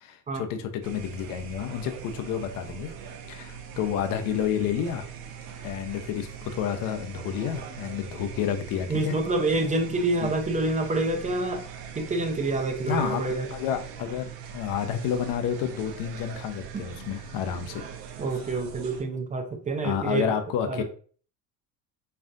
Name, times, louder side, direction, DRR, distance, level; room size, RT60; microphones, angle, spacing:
voice 1, 0.0-2.9 3.3-5.0 5.6-9.2 10.2-10.3 12.9-13.2 13.5-17.8 19.8-20.8, left 8 dB, 65° left, 7 dB, 0.7 m, -30 dB
sound 1, 0.8-19.0, right 7 dB, 85° right, 0.8 m, -41 dB
voice 2, 8.9-11.7 12.0-13.5 16.7-16.8 18.2-20.3 20.7-20.8, right 2 dB, 20° right, 4 dB, 0.4 m, -27 dB
5.4 x 2.4 x 2.6 m, 0.41 s
cardioid pair, 120°, 35 cm